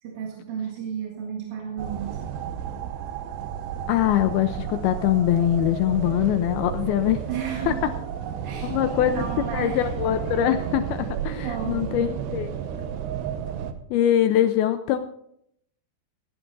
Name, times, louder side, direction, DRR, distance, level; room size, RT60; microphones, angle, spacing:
voice 1, 0.0-2.1 7.3-8.1 8.4-9.9 11.3-11.9, right 7 dB, 55° right, 0 dB, 3.0 m, -33 dB
sound 1, 1.8-13.7, right 9 dB, 80° right, 3.1 m, -32 dB
voice 2, 3.9-7.2 7.7-7.8 8.6-9.3 9.5-12.5 13.9-15.0, left 11 dB, 80° left, 9 dB, 2.3 m, -23 dB
16.5 x 11.0 x 3.9 m, 0.71 s
omnidirectional pair, 4.8 m